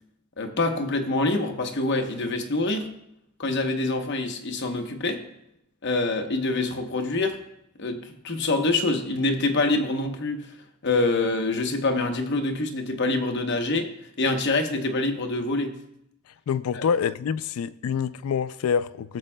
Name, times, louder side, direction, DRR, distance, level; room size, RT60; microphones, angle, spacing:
voice 1, 0.4-2.9 3.4-5.2 5.8-7.4 7.8-10.5 10.8-13.9 14.2-15.8 16.8-16.9, left 2 dB, 55° left, 0.9 m, -25 dB
voice 2, 16.5-19.2, left 7 dB, 90° left, 0.3 m, -26 dB
15.0 x 7.1 x 2.2 m
head